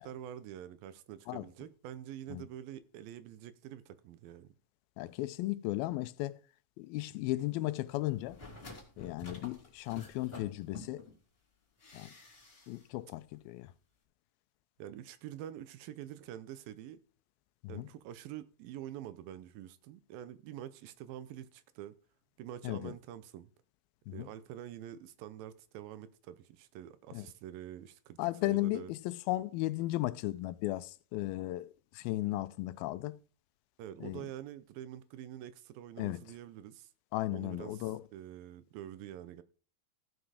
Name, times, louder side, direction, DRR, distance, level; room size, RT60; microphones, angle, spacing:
voice 1, 0.0-4.6 14.8-17.0 17.7-22.0 22.4-23.5 24.1-28.2 28.4-28.9 33.8-36.9 37.3-39.4, right 11 dB, 80° right, 2.5 m, -46 dB
voice 2, 5.0-6.4 6.8-8.4 9.0-11.0 11.9-12.1 12.7-13.7 17.6-17.9 22.6-22.9 24.1-24.3 27.1-27.3 28.2-33.2 34.0-34.3 36.0-36.2 37.1-38.0, left 17 dB, 85° left, 2.4 m, -35 dB
sound 1, 8.1-11.2 11.8-12.9 13.1-13.2, left 2 dB, 20° left, 2.6 m, -50 dB
14.5 x 6.1 x 4.9 m
omnidirectional pair, 4.2 m